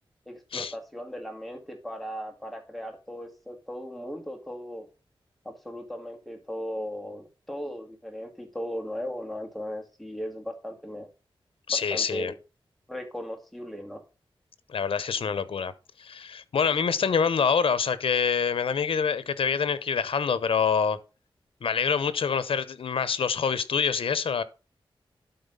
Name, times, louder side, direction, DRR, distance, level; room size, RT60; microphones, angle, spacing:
voice 1, 0.3-4.9 5.4-11.1 11.7-12.3 12.9-14.0, equal, ahead, 2.3 m, -37 dB
voice 2, 11.7-12.3 14.7-15.7 16.0-21.0 21.6-24.4, left 6 dB, 80° left, 0.8 m, -26 dB
12.0 x 4.0 x 5.4 m
wide cardioid pair, 90°, 9 cm